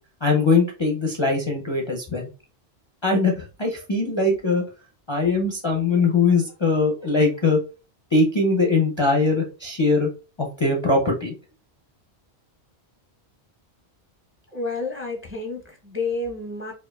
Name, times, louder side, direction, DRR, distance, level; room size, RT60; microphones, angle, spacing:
voice 1, 0.2-2.3 3.0-4.6 5.1-7.6 8.1-10.1 10.4-11.3, left 3 dB, 35° left, -1 dB, 0.5 m, -21 dB
voice 2, 14.5-16.7, left 3 dB, 15° right, 1 dB, 0.6 m, -30 dB
4.4 x 2.4 x 2.3 m, 0.33 s
omnidirectional pair, 1.1 m